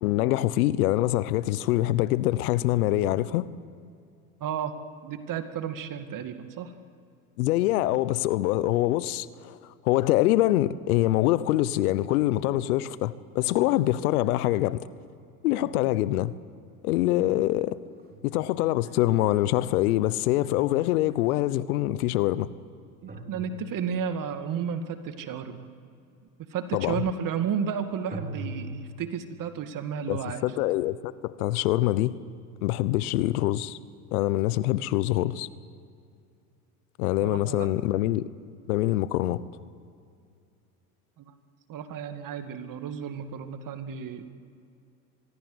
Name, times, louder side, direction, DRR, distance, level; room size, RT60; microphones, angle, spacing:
voice 1, 0.0-3.5 7.4-9.6 9.8-14.9 15.4-16.3 16.8-17.8 18.2-22.5 26.7-26.9 30.1-32.2 32.6-33.8 34.1-35.5 37.0-38.2 38.7-39.4, left 15 dB, 75° left, 1.0 m, -24 dB
voice 2, 4.4-4.7 5.0-6.7 15.6-15.7 23.0-25.7 26.5-30.5 37.2-37.7 41.2-41.3 41.7-44.2, right 7 dB, 45° right, 2.2 m, -32 dB
sound 1, 16.7-16.8 17.7-21.3 23.1-24.2 28.1-28.8, right 2 dB, 20° right, 4.0 m, -42 dB
25.0 x 22.0 x 8.0 m
hypercardioid pair, 85°, 45 cm